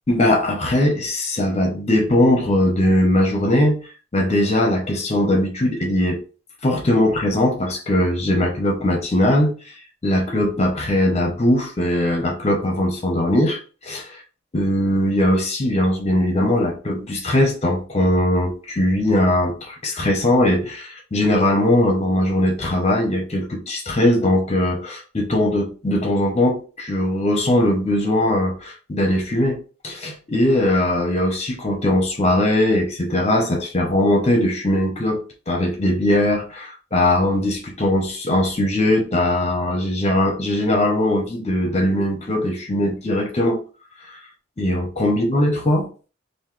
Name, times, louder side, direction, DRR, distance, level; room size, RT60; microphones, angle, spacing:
voice 1, 0.1-3.8 4.1-6.2 6.6-9.5 10.0-14.2 14.5-29.6 29.8-43.6 44.1-44.2 44.6-45.9, left 1 dB, 30° left, 0.9 m, -20 dB
3.9 x 2.7 x 3.2 m
head